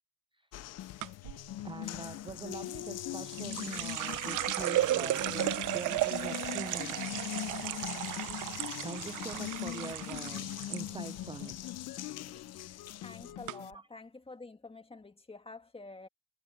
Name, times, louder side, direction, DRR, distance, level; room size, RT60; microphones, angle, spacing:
Water tap faucet, 0.5-13.3, left 14 dB, 60° left, 0.5 m, -41 dB
sound 1, 0.8-13.7, left 14 dB, 80° left, 1.1 m, -48 dB
sound 2, 1.0-1.4 2.9-10.8 11.1-11.7 12.0-12.4 13.0-13.1 13.5-13.6, right 15 dB, 85° right, 0.7 m, -34 dB
voice 1, 1.6-7.0 8.8-11.6 13.7-13.9, right 4 dB, 15° right, 0.5 m, -44 dB
voice 2, 12.9-16.1, left 3 dB, 20° left, 2.0 m, -48 dB
cardioid pair, 90°, 30 cm